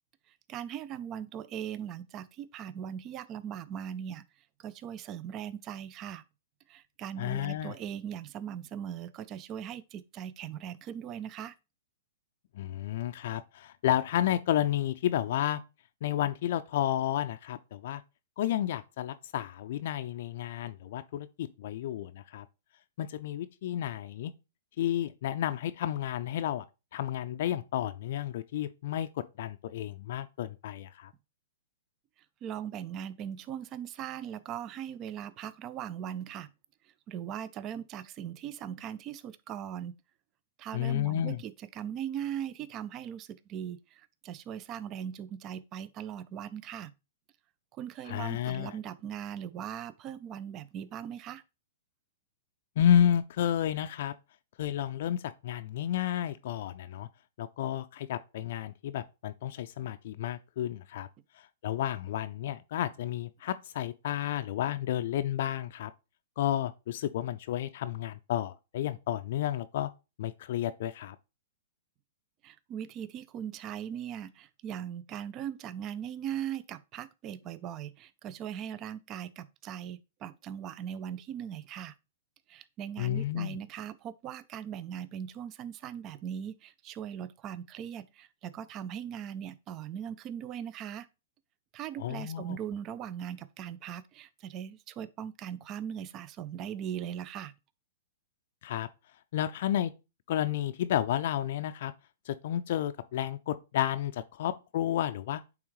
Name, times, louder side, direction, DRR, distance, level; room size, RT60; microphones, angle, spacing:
voice 1, 0.3-4.2 4.6-6.2 6.7-11.5 32.4-36.5 37.1-40.0 40.6-46.9 47.7-51.4 72.4-82.0 82.5-91.1 91.7-97.6, right 9 dB, 30° right, 0.4 m, -39 dB
voice 2, 7.2-7.7 12.5-15.6 16.0-18.0 18.4-22.5 23.0-24.3 24.8-26.7 26.9-31.1 40.7-41.4 48.1-48.8 52.8-54.1 54.6-57.1 57.4-61.1 61.4-65.9 66.4-69.9 70.2-71.2 83.0-83.6 92.0-92.6 98.6-98.9 99.3-99.9 100.3-101.9 102.3-105.4, left 11 dB, 60° left, 0.4 m, -31 dB
8.6 x 3.6 x 3.1 m
hypercardioid pair, 125°, 0 cm